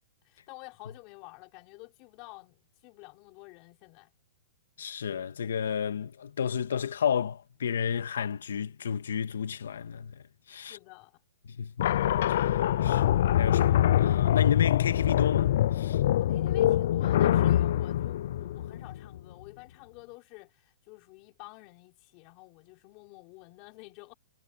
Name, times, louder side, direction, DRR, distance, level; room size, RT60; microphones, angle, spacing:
voice 1, 0.2-4.1 10.5-11.2 16.0-24.1, left 26 dB, 25° left, 5.9 m, -50 dB
voice 2, 4.8-10.8 11.6-11.9 12.4-16.0, left 7 dB, 85° left, 1.8 m, -32 dB
sound 1, 11.8-19.2, left 12 dB, 45° left, 0.4 m, -24 dB
hypercardioid pair, 175°, 0 cm